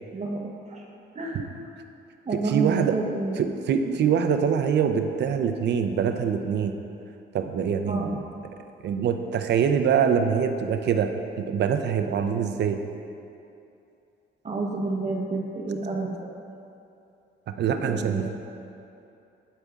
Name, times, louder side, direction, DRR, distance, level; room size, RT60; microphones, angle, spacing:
voice 1, 0.1-0.8 1.1-1.5 2.2-3.4 7.9-8.1 14.4-16.3 17.8-18.4, right 3 dB, 35° right, -1 dB, 0.9 m, -30 dB
voice 2, 2.3-3.0 3.4-6.7 7.3-8.2 8.8-11.1 11.4-12.8 17.5-18.4, right 7 dB, 60° right, 7 dB, 0.5 m, -24 dB
8.7 x 7.9 x 2.4 m, 2.7 s
cardioid pair, 90°, 20 cm